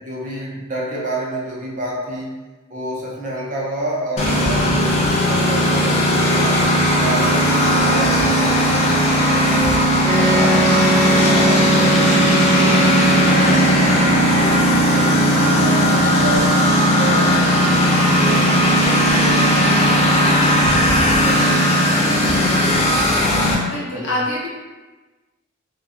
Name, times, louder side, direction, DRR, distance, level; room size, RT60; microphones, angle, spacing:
voice 1, 0.0-2.4 2.7-6.7 6.9-9.8 10.1-12.2 12.5-16.6 16.9-17.7 18.0-23.3 23.9-24.2, right 1 dB, 40° right, -4 dB, 0.5 m, -29 dB
Engine, 4.2-23.5, equal, 30° left, 0.4 m, -16 dB
Wind instrument woodwind instrument, 10.0-14.1, right 1 dB, 20° right, 0.9 m, -20 dB
voice 2, 23.6-24.5, left 1 dB, 80° left, -5 dB, 0.7 m, -26 dB
2.5 x 2.2 x 2.4 m, 1.3 s
head